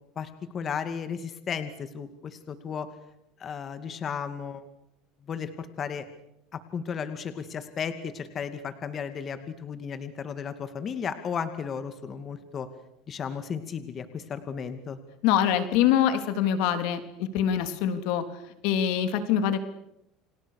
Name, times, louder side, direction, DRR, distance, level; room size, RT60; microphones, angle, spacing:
voice 1, 0.2-2.9 3.4-4.6 5.3-6.1 6.5-12.7 13.1-15.0, left 7 dB, 35° left, 9 dB, 2.4 m, -34 dB
voice 2, 15.2-18.2 18.6-19.6, left 9 dB, 70° left, 9 dB, 3.3 m, -24 dB
30.0 x 26.5 x 6.6 m, 0.84 s
supercardioid pair, 125°, 0 cm